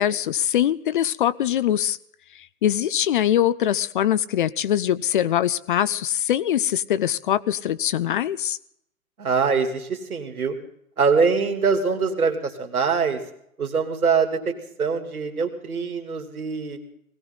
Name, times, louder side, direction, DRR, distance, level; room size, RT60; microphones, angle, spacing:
voice 1, 0.0-2.0 2.6-8.6, left 11 dB, 35° left, 17 dB, 0.6 m, -22 dB
voice 2, 9.2-10.6 11.0-13.2 13.6-16.8, right 5 dB, 85° right, 5 dB, 3.0 m, -23 dB
20.0 x 16.5 x 3.9 m, 0.73 s
hypercardioid pair, 130°, 42 cm